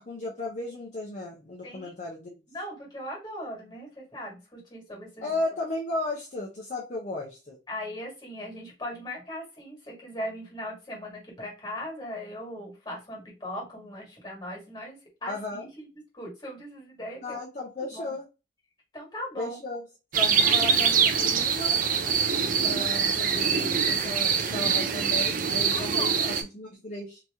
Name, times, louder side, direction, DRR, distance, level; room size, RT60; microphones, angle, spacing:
voice 1, 0.0-2.4 5.2-7.6 15.3-15.7 17.2-18.2 19.4-19.8 20.1-21.8 22.6-27.2, left 2 dB, 45° left, -2 dB, 0.7 m, -35 dB
voice 2, 2.5-5.4 7.7-15.9 16.1-17.4 17.9-18.2 18.9-19.6 20.4-20.5 22.3-22.8 25.7-26.3, equal, 25° left, -1 dB, 1.7 m, -39 dB
sound 1, 20.1-26.4, right 6 dB, 50° right, 0.5 m, -24 dB
2.9 x 2.9 x 3.5 m, 0.29 s
head